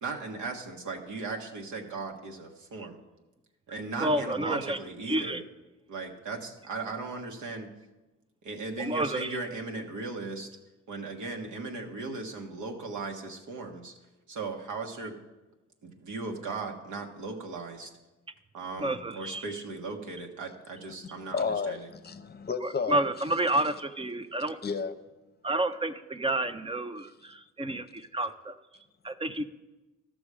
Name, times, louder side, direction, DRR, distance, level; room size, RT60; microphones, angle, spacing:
voice 1, 0.0-3.0 3.7-5.4 5.9-7.7 8.4-10.5 10.9-13.9 14.3-15.2 15.8-17.9 18.5-21.9, right 3 dB, 75° right, 2 dB, 1.5 m, -37 dB
voice 2, 4.0-4.8 5.1-5.4 8.8-9.4 18.8-19.4 22.6-24.6 25.4-28.5 29.0-29.4, right 1 dB, 20° right, 11 dB, 0.5 m, -30 dB
voice 3, 21.3-23.0 24.6-24.9, left 5 dB, 35° left, 10 dB, 0.8 m, -31 dB
13.5 x 6.2 x 4.9 m, 1.1 s
cardioid pair, 90°, 30 cm